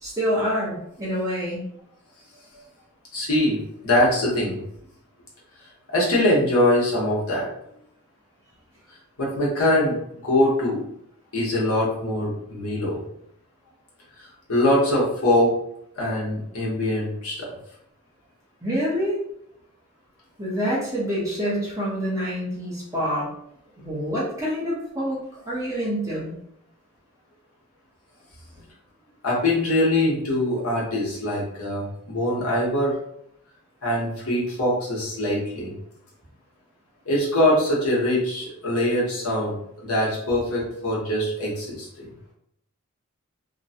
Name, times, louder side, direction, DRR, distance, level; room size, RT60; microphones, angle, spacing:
voice 1, 0.0-1.6 18.6-19.2 20.4-23.3 23.8-25.2 25.5-26.3, equal, 15° right, -7 dB, 0.9 m, -26 dB
voice 2, 3.1-4.6 5.9-7.5 9.2-10.0 10.2-10.8 11.3-13.0 14.5-15.5 16.0-17.5 29.2-32.9 33.8-35.7 37.0-42.1, left 1 dB, 85° left, -5 dB, 1.2 m, -23 dB
2.9 x 2.3 x 2.7 m, 0.72 s
head